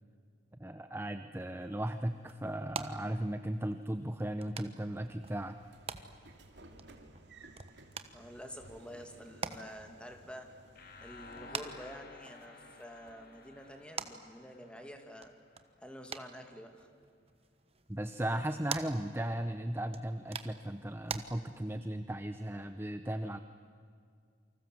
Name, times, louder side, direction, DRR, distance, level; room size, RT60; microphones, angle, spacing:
voice 1, 0.6-5.6 6.0-6.1 17.9-23.4, right 1 dB, 10° right, 9 dB, 0.7 m, -36 dB
sound 1, 1.4-21.2, right 5 dB, 35° right, 1.2 m, -47 dB
Train / Sliding door, 5.2-11.7, right 2 dB, 65° right, 2.7 m, -57 dB
voice 2, 8.1-10.5 11.0-15.3 15.8-16.9, equal, 5° left, 5 dB, 2.4 m, -48 dB
sound 2, 10.7-15.6, left 3 dB, 55° left, 2.6 m, -53 dB
28.5 x 25.0 x 7.8 m, 2.3 s
head